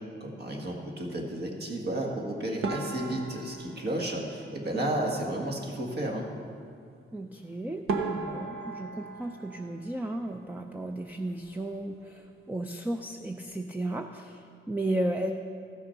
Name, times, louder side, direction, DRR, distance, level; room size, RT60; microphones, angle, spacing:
voice 1, 0.2-6.3, right 1 dB, 50° right, 0 dB, 1.8 m, -32 dB
sound 1, 2.6-5.1 7.3-7.4 7.9-10.6 10.9-11.7 12.0-12.2 12.5-12.6 13.2-13.5, right 3 dB, 85° right, 1.1 m, -37 dB
voice 2, 7.1-15.3, right 1 dB, 10° right, 5 dB, 0.5 m, -34 dB
14.0 x 6.3 x 5.7 m, 2.3 s
cardioid pair, 95°, 21 cm